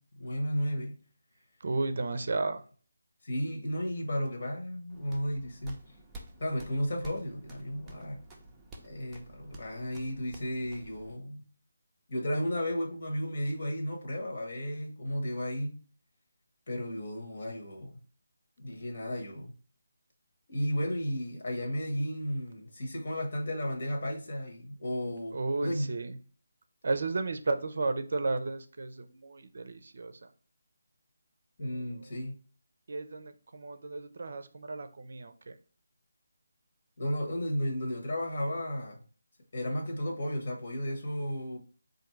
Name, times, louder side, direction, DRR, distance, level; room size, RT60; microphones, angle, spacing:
voice 1, 0.2-1.0 3.2-5.8 6.4-8.2 8.8-11.4 12.1-15.8 16.7-18.0 18.6-19.5 20.5-25.9 31.6-32.3 37.0-39.0 39.5-41.6, equal, 50° left, 1.2 m, -33 dB
voice 2, 1.6-2.6 25.3-26.2 26.8-30.3 31.6-32.3 32.9-35.6, right 3 dB, 60° right, 0.5 m, -34 dB
sound 1, 4.9-11.2, right 2 dB, 10° right, 0.5 m, -51 dB
3.8 x 2.6 x 4.5 m
figure-of-eight pair, 165°, 0 cm